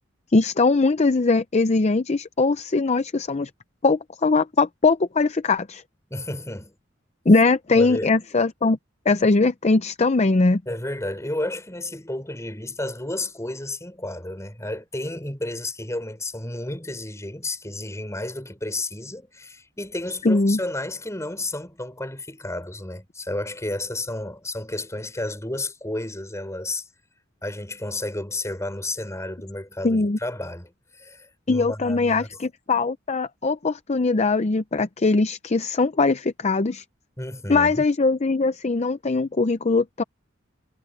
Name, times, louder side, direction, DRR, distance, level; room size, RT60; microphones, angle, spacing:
voice 1, 0.3-3.5 3.8-5.8 7.3-8.8 9.1-10.6 20.2-20.6 29.8-30.2 31.5-36.8 37.5-40.0, left 3 dB, 35° left, 0.6 m, -21 dB
voice 2, 6.1-6.8 7.7-8.1 10.7-26.8 27.4-32.4 37.2-37.8, left 1 dB, 15° left, 6.0 m, -32 dB
head